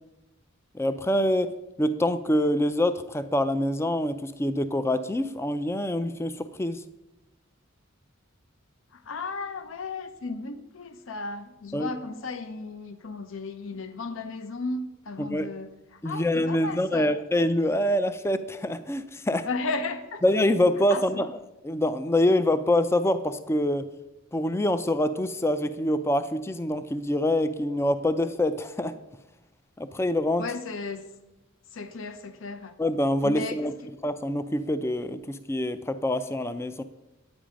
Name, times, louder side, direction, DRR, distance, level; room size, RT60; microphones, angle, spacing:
voice 1, 0.7-1.5 1.8-6.8 11.7-11.9 15.2-15.5 16.0-19.5 20.2-21.3 21.6-23.9 24.3-28.9 29.8-30.4 32.8-33.7 34.0-36.8, left 1 dB, 10° left, 12 dB, 0.4 m, -25 dB
voice 2, 8.9-17.1 19.4-20.2 20.9-21.2 30.4-31.1 31.7-32.7 33.2-33.9, left 3 dB, 70° left, 10 dB, 0.7 m, -35 dB
9.3 x 8.8 x 5.1 m, 0.97 s
head